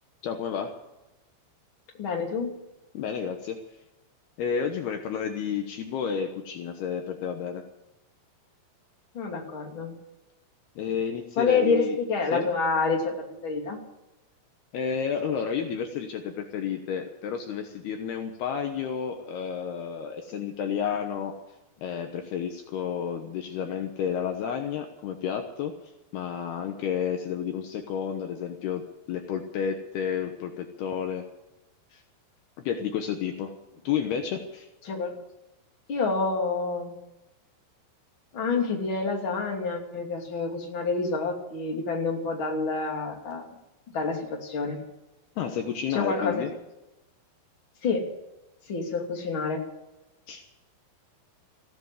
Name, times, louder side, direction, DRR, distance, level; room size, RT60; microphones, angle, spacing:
voice 1, 0.2-0.7 2.9-3.6 4.4-7.6 10.8-12.0 12.3-12.4 14.7-21.3 21.8-25.7 26.1-28.8 29.1-31.2 31.9-32.0 32.6-33.5 33.8-34.7 45.4-46.5 50.3-50.4, left 7 dB, 70° left, 5 dB, 3.0 m, -31 dB
voice 2, 2.0-2.5 9.1-9.9 11.4-13.2 13.4-13.8 34.8-35.2 35.9-36.9 38.3-43.5 43.9-44.8 45.9-46.4 47.8-48.0 48.7-49.6, left 4 dB, 30° left, 1 dB, 3.0 m, -28 dB
16.0 x 10.5 x 8.0 m, 0.96 s
omnidirectional pair, 5.0 m